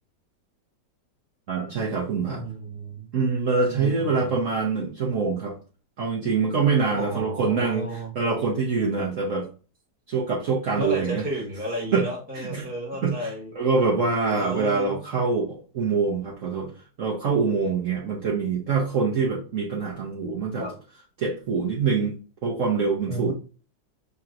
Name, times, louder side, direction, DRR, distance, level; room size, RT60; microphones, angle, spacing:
voice 1, 1.5-2.4 3.1-5.5 6.0-9.5 10.1-11.2 11.9-12.0 12.3-12.6 13.0-16.7 17.0-20.7 21.2-22.1 22.4-23.3, right 4 dB, 55° right, -3 dB, 1.0 m, -25 dB
voice 2, 2.3-3.1 3.7-4.3 7.0-8.1 10.8-13.5 14.3-15.0 20.6-20.7 23.1-23.3, right 1 dB, 5° right, -4 dB, 1.1 m, -32 dB
6.7 x 2.9 x 2.5 m, 0.36 s
omnidirectional pair, 1.9 m